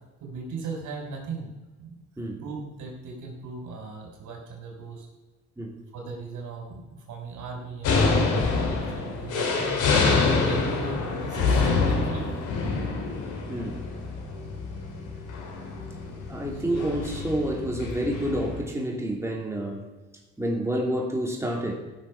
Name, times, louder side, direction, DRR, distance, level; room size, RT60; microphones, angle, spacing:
voice 1, 0.2-1.5 1.8-5.1 5.9-9.9 10.4-12.4 16.5-16.8, right 3 dB, 80° right, 0 dB, 3.6 m, -38 dB
sound 1, 7.8-18.6, left 4 dB, 80° left, 2.7 m, -26 dB
voice 2, 13.5-13.8 16.3-19.9 20.4-21.7, right 1 dB, 10° right, 0 dB, 2.8 m, -29 dB
15.5 x 6.4 x 5.9 m, 1.2 s
cardioid pair, 90°, 30 cm